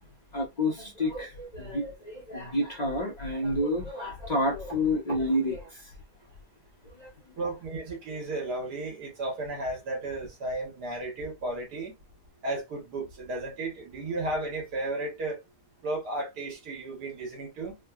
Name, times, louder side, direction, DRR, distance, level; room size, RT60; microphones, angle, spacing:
voice 1, 0.3-5.9 6.8-7.3, left 1 dB, 35° left, 0.7 m, -29 dB
voice 2, 7.4-12.0 12.4-15.4 15.8-17.8, right 2 dB, 85° right, 1.8 m, -34 dB
3.7 x 2.1 x 2.3 m
omnidirectional pair, 1.7 m